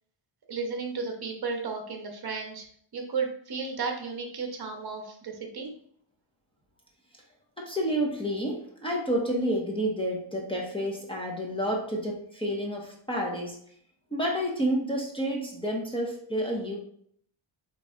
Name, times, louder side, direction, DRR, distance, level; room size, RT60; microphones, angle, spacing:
voice 1, 0.5-2.6 2.9-5.7, right 4 dB, 50° right, 2 dB, 1.1 m, -33 dB
voice 2, 7.6-13.6 14.1-16.8, equal, 10° left, -1 dB, 1.0 m, -29 dB
8.2 x 3.2 x 3.6 m, 0.63 s
wide cardioid pair, 175°, 50 cm